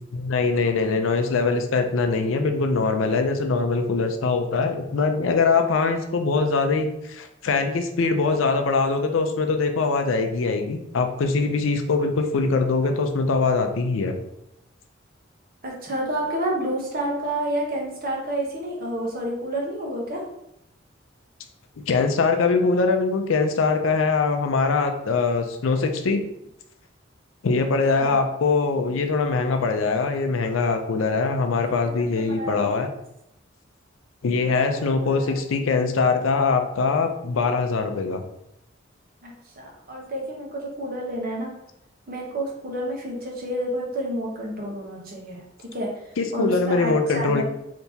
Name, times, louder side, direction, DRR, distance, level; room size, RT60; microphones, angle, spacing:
voice 1, 0.0-14.2 21.9-26.2 27.4-32.9 34.2-38.2 46.2-47.4, left 4 dB, 85° left, 6 dB, 0.4 m, -22 dB
voice 2, 15.6-20.2 27.9-28.2 31.8-31.9 32.3-32.8 34.5-34.6 39.2-41.5 42.1-45.4 45.7-45.9 46.3-47.4, right 1 dB, 50° right, -1 dB, 0.9 m, -29 dB
3.4 x 2.9 x 2.7 m, 0.82 s
head